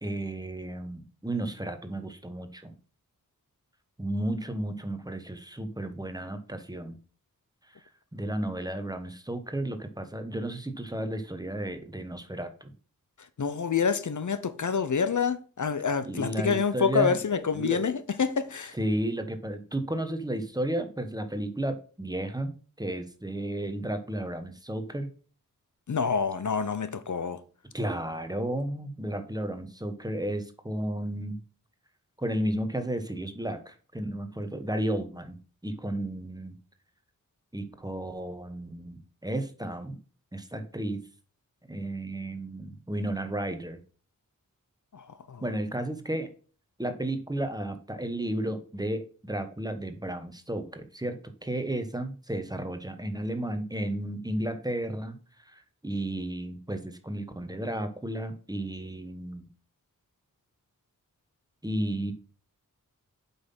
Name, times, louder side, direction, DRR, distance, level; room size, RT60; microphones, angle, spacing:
voice 1, 0.0-2.8 4.0-7.0 7.7-12.7 16.0-17.9 18.7-22.5 22.8-25.1 27.7-31.4 32.2-35.4 35.6-36.6 37.5-40.0 40.3-41.0 41.7-43.8 45.4-46.3 46.8-59.5 61.6-62.1, right 1 dB, 10° right, 1.2 m, -33 dB
voice 2, 13.4-18.8 25.9-27.4 44.9-45.4, left 6 dB, 60° left, 0.8 m, -27 dB
7.9 x 5.7 x 5.6 m
wide cardioid pair, 90°, 33 cm